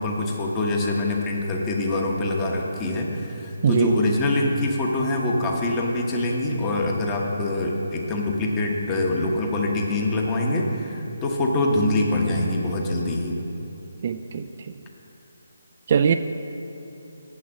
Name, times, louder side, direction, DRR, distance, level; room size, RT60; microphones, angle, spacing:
voice 1, 0.0-13.4, left 2 dB, 20° left, 0 dB, 1.0 m, -24 dB
voice 2, 3.6-3.9 14.0-14.4 15.9-16.1, right 7 dB, 40° right, 8 dB, 0.3 m, -20 dB
7.6 x 6.4 x 7.1 m, 2.9 s
figure-of-eight pair, 150°, 0 cm